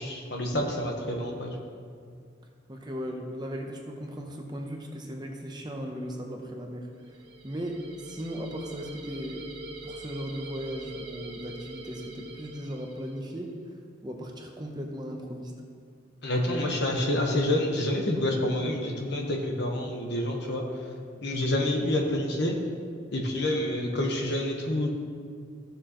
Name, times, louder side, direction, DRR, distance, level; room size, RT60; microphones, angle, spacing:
voice 1, 0.0-1.5 16.2-20.6 21.2-22.6 23.1-24.9, left 1 dB, 55° left, 1 dB, 1.3 m, -28 dB
voice 2, 2.7-7.2 7.4-9.5 9.8-15.5, equal, 20° right, 2 dB, 0.8 m, -37 dB
sound 1, 7.0-13.4, right 1 dB, 60° right, 1.7 m, -43 dB
14.5 x 6.8 x 3.1 m, 2.1 s
head